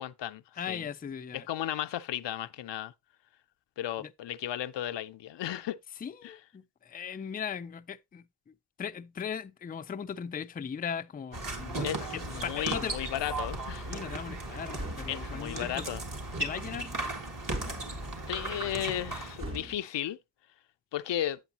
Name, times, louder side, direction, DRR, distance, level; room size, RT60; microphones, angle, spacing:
voice 1, 0.0-0.4 0.7-0.9 1.3-2.9 3.8-5.8 6.2-6.4 11.8-13.9 15.1-16.0 18.3-20.2 20.9-21.4, left 12 dB, 85° left, 0.5 m, -34 dB
voice 2, 0.6-1.5 4.0-4.1 6.0-8.2 8.8-11.9 12.1-13.0 13.9-15.9 16.4-16.9, left 7 dB, 25° left, 0.3 m, -38 dB
sound 1, 11.3-19.6, right 2 dB, 50° right, 2.0 m, -36 dB
sound 2, 14.7-15.3 17.5-18.0 19.4-19.8, right 1 dB, 30° right, 2.1 m, -39 dB
8.0 x 7.7 x 2.8 m
wide cardioid pair, 75°, 41 cm